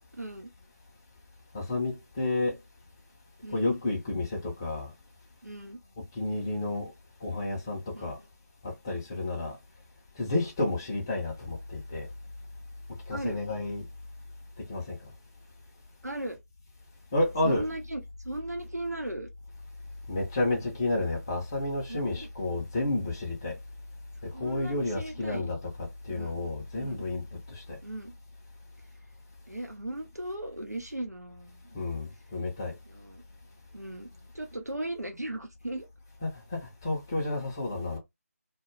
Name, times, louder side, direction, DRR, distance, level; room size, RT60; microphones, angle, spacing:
voice 1, 0.1-0.5 3.4-3.8 5.4-5.8 7.9-8.1 13.1-13.4 16.0-16.4 17.4-19.3 21.9-22.3 24.3-25.5 26.1-26.4 26.7-27.0 27.8-28.2 29.5-31.8 32.8-33.2 33.7-35.9, right 1 dB, 85° right, 0.8 m, -37 dB
voice 2, 1.5-2.6 3.5-4.9 6.1-6.9 7.2-8.2 8.6-9.6 10.2-12.1 13.1-13.8 14.6-15.0 17.1-17.7 20.1-23.6 24.3-27.2 27.5-27.8 31.7-32.7 36.2-38.0, left 2 dB, 15° left, 0.4 m, -31 dB
2.2 x 2.0 x 3.0 m
figure-of-eight pair, 160°, 9 cm